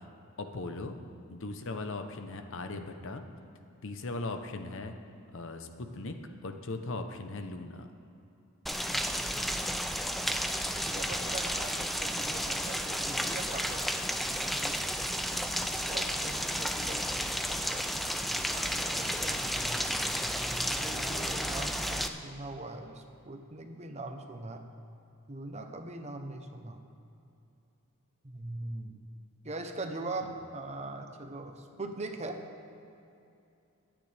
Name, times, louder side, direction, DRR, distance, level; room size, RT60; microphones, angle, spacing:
voice 1, 0.4-1.0 1.3-3.2 3.8-4.9 5.3-6.2 6.4-7.9 15.3-15.7 18.9-19.4 30.2-30.3, left 2 dB, 60° left, 6 dB, 0.8 m, -39 dB
Rain, 8.7-22.1, equal, ahead, 0.4 m, -32 dB
voice 2, 10.7-14.7 15.9-17.8 18.5-20.1 20.5-24.7 25.3-26.8 28.2-29.0 29.4-32.4, right 2 dB, 30° right, 5 dB, 0.8 m, -41 dB
23.0 x 9.1 x 3.4 m, 2.7 s
head